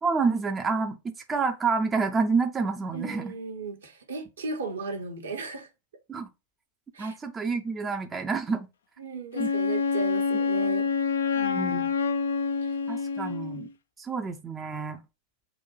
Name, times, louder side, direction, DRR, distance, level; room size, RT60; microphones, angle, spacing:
voice 1, 0.0-3.3 6.1-6.3 7.0-8.7 9.4-9.5 11.5-11.9 12.9-13.7 14.0-15.0, right 4 dB, 20° right, 0.5 m, -28 dB
voice 2, 2.9-5.7 6.9-7.2 9.0-10.9 11.3-11.8 12.6-12.8, right 3 dB, 70° right, 1.1 m, -36 dB
Wind instrument woodwind instrument, 9.3-13.7, left 5 dB, 65° left, 0.4 m, -27 dB
4.0 x 2.2 x 4.4 m
figure-of-eight pair, 90°, 0 cm